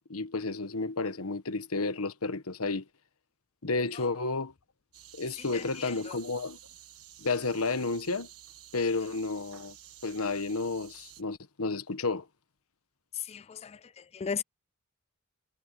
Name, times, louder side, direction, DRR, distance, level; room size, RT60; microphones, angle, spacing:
voice 1, 0.1-2.8 3.6-4.5 5.1-6.6 7.2-8.3 8.7-9.7 10.0-12.3, left 3 dB, 85° left, 1.3 m, -31 dB
sound 1, 4.9-11.2, right 12 dB, 90° right, 1.5 m, -52 dB
voice 2, 5.5-6.2 13.3-13.8 14.1-14.4, left 6 dB, 30° left, 0.3 m, -36 dB
head